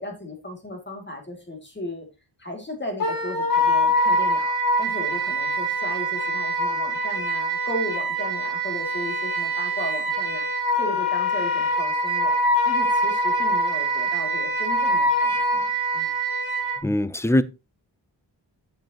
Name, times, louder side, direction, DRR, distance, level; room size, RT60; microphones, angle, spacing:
voice 1, 0.0-2.1 2.4-15.6 15.9-16.1, left 1 dB, 25° left, 2.5 m, -35 dB
Wind instrument woodwind instrument, 3.0-16.8, equal, 50° left, 3.7 m, -24 dB
voice 2, 16.8-17.4, left 1 dB, 5° left, 0.4 m, -21 dB
9.1 x 7.2 x 2.9 m
wide cardioid pair, 100°, 44 cm